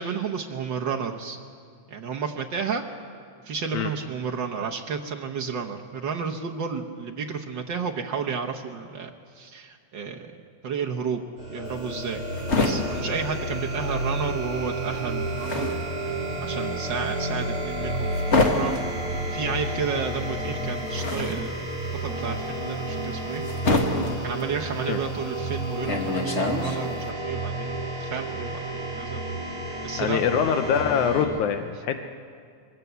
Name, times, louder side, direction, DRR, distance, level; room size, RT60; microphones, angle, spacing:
voice 1, 0.0-1.4 1.9-2.8 3.4-9.1 9.4-10.3 10.6-11.2 11.5-12.2 12.6-15.7 16.0-16.1 16.4-18.7 19.3-21.7 22.0-23.4 23.8-23.9 24.2-29.2 29.8-30.6, right 6 dB, 70° right, 1 dB, 1.1 m, -32 dB
sound 1, 11.4-31.3, right 1 dB, 50° right, 5.5 m, -31 dB
sound 2, 11.7-14.2 14.5-27.1, left 2 dB, 30° left, 1.3 m, -28 dB
voice 2, 29.7-32.0, left 7 dB, 80° left, 7 dB, 2.2 m, -24 dB
22.5 x 15.0 x 8.1 m, 2.2 s
omnidirectional pair, 3.4 m